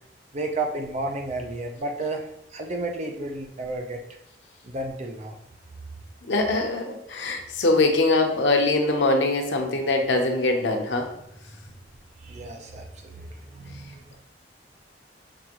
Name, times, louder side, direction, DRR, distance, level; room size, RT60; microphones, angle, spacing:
voice 1, 0.3-2.2 2.5-4.0 4.6-5.4 12.2-14.2, right 2 dB, 40° right, 2 dB, 0.6 m, -32 dB
voice 2, 6.3-11.1, left 2 dB, 85° left, 3 dB, 0.8 m, -22 dB
6.4 x 2.5 x 2.9 m, 0.76 s
head